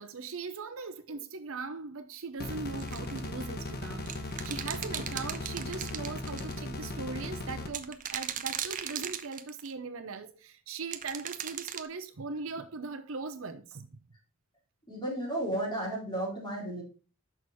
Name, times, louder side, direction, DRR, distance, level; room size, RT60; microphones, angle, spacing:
voice 1, 0.0-14.0, right 4 dB, 70° right, 0.7 m, -40 dB
sound 1, 2.4-7.7, left 1 dB, 50° left, 1.1 m, -38 dB
sound 2, 2.8-3.3 4.1-6.5 7.7-9.7 10.9-11.9, right 9 dB, 40° right, 0.6 m, -37 dB
voice 2, 14.9-16.8, right 1 dB, 20° left, 3.9 m, -33 dB
6.4 x 6.0 x 4.1 m
head